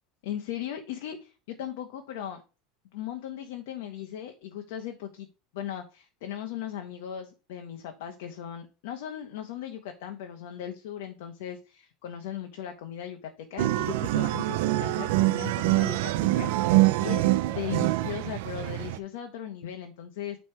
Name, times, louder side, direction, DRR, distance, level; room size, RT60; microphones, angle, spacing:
voice 1, 0.2-2.4 2.9-5.3 5.5-20.4, left 10 dB, 75° left, 5 dB, 1.0 m, -38 dB
sound 1, 13.6-19.0, right 17 dB, 70° right, 0.4 m, -25 dB
8.7 x 3.3 x 4.6 m, 0.33 s
supercardioid pair, 150°, 0 cm